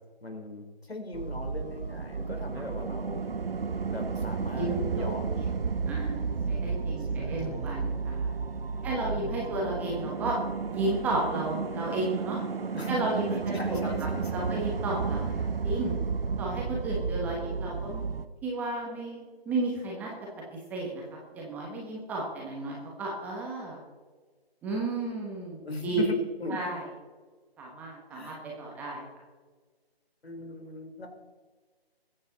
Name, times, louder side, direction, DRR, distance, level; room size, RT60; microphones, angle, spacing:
voice 1, 0.2-3.3 3.9-5.5 7.0-8.0 8.8-9.4 12.7-12.9 13.3-14.6 25.6-26.6 28.1-28.4 30.2-31.1, left 2 dB, 75° left, 4 dB, 3.9 m, -40 dB
sound 1, 1.1-18.3, right 5 dB, 65° right, 0.9 m, -32 dB
voice 2, 4.5-8.3 8.8-10.4 10.7-12.4 12.9-13.4 14.3-15.9 16.4-18.1 18.4-20.1 20.5-21.0 21.3-23.8 24.6-26.1 26.5-26.8 27.6-29.0, right 2 dB, 5° right, -2 dB, 1.2 m, -33 dB
22.0 x 8.6 x 4.1 m, 1.4 s
figure-of-eight pair, 155°, 31 cm